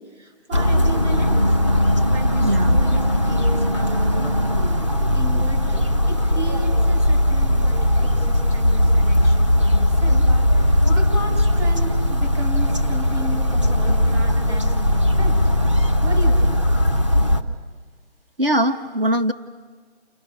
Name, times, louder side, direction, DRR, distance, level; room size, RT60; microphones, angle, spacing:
voice 1, 0.0-1.5 2.1-4.7 5.1-10.3 10.6-15.4 16.0-16.5, equal, 80° right, 2 dB, 7.9 m, -34 dB
sound 1, 0.5-17.4, left 1 dB, 25° right, 0.8 m, -18 dB
voice 2, 2.4-2.8 18.4-19.3, right 1 dB, 50° right, 6 dB, 1.0 m, -21 dB
29.5 x 29.0 x 6.1 m, 1.5 s
figure-of-eight pair, 175°, 35 cm